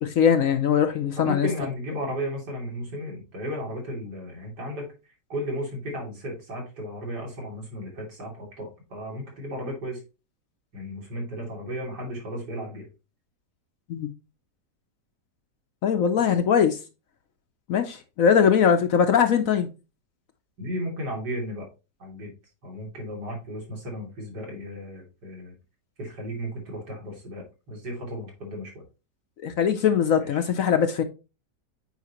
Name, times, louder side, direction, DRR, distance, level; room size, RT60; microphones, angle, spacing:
voice 1, 0.0-1.5 13.9-14.1 15.8-16.8 17.7-19.7 29.4-31.0, left 7 dB, 60° left, 1.0 m, -21 dB
voice 2, 1.2-4.9 5.3-10.0 10.7-12.9 16.3-16.4 20.6-21.7 22.0-22.3 22.6-25.5 26.0-28.8 30.2-30.4, equal, 75° right, 3.5 m, -34 dB
8.3 x 5.0 x 3.0 m
omnidirectional pair, 1.8 m